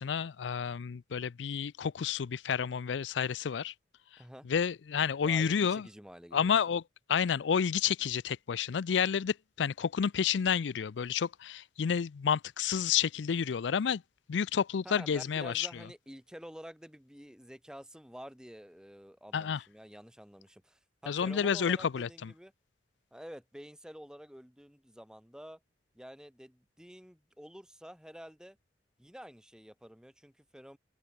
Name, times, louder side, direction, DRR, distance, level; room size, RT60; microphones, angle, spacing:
voice 1, 0.0-3.7 4.5-5.8 6.3-6.8 7.1-14.0 14.3-15.7 19.3-19.6 21.1-22.3, left 7 dB, 90° left, 0.4 m, -30 dB
voice 2, 4.2-4.5 5.2-6.5 14.8-22.5 23.1-25.6 25.9-28.6 29.0-30.8, equal, 5° right, 3.6 m, -49 dB
head